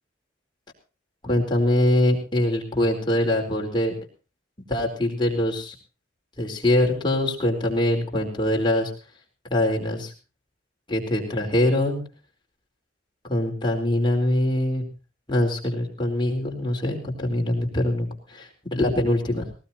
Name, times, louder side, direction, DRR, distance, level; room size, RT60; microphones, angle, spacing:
voice 1, 1.2-3.9 4.7-5.7 6.4-8.9 9.5-10.1 10.9-12.0 13.3-14.8 15.3-19.5, left 1 dB, 25° left, 0 dB, 4.3 m, -23 dB
19.5 x 18.5 x 2.9 m, 0.34 s
head